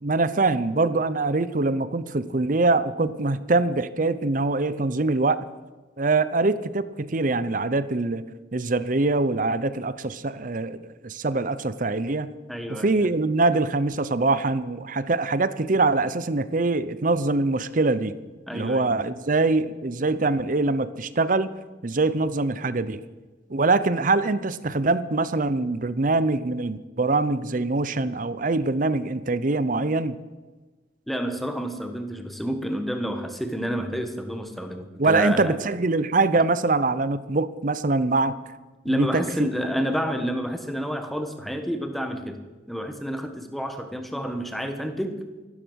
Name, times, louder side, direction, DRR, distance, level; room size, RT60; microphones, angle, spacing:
voice 1, 0.0-5.4 6.0-8.3 8.5-12.3 12.7-18.1 18.5-21.5 21.8-23.0 23.5-30.2 35.0-38.4 38.9-39.2, right 3 dB, 45° right, 15 dB, 0.7 m, -23 dB
voice 2, 12.5-13.1 18.5-19.0 31.1-35.6 38.8-42.4 42.7-45.2, equal, ahead, 7 dB, 1.2 m, -29 dB
14.0 x 12.0 x 6.3 m, 1.2 s
head